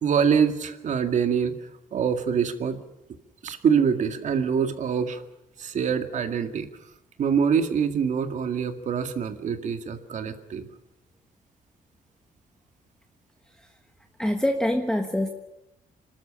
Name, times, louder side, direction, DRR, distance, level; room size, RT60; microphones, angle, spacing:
voice 1, 0.0-1.6 1.9-2.8 3.4-5.2 5.6-6.7 7.2-10.7, right 7 dB, 55° right, 7 dB, 2.1 m, -25 dB
voice 2, 14.2-15.3, left 1 dB, 5° left, 4 dB, 1.3 m, -24 dB
27.0 x 13.0 x 10.0 m, 0.91 s
cardioid pair, 150°, 15 cm